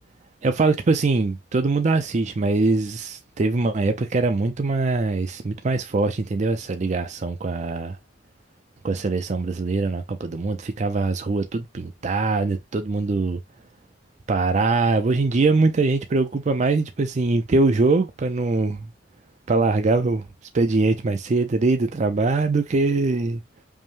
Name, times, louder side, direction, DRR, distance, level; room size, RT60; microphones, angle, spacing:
voice 1, 0.4-8.0 8.8-13.4 14.3-18.9 19.5-20.2 20.5-23.4, right 3 dB, 40° right, 0.5 m, -22 dB
5.3 x 2.1 x 3.1 m
head